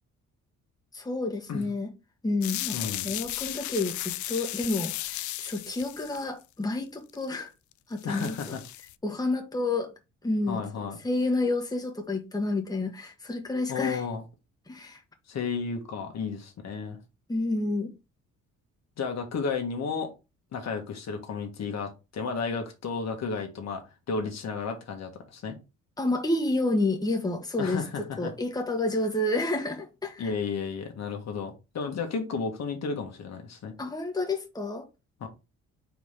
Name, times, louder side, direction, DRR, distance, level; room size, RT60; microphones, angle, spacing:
voice 1, 0.9-1.9 2.2-2.8 3.0-7.5 7.9-8.3 9.0-9.9 10.2-14.0 14.7-15.0 17.3-17.9 26.0-27.8 28.2-30.3 33.8-34.9, left 2 dB, 10° left, 1.4 m, -29 dB
sound 1, 2.4-6.3 7.1-7.3 7.7-7.8 8.0-8.9, left 16 dB, 75° left, 0.5 m, -35 dB
voice 2, 2.7-3.1 8.0-8.6 10.5-11.0 13.7-14.2 15.3-17.0 19.0-20.1 20.5-23.8 24.1-25.6 27.6-28.3 30.2-33.7 35.2-35.3, left 5 dB, 60° left, 1.6 m, -33 dB
4.8 x 4.0 x 5.0 m
cardioid pair, 90°, 30 cm